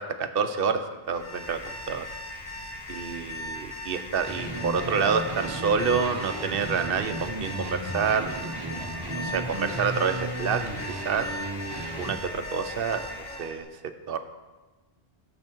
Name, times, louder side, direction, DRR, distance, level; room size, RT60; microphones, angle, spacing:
voice 1, 0.0-2.1 2.9-8.7 9.2-10.6 10.9-11.3 12.0-13.0 13.4-13.7 14.1-14.2, right 6 dB, 65° right, 9 dB, 0.9 m, -28 dB
Alarm, 1.1-13.6, left 1 dB, 40° left, 2.8 m, -38 dB
sound 1, 4.3-12.2, right 2 dB, 25° right, 0.8 m, -35 dB
sound 2, 4.6-13.7, equal, 5° left, 1.2 m, -49 dB
12.0 x 7.0 x 4.4 m, 1.2 s
omnidirectional pair, 1.1 m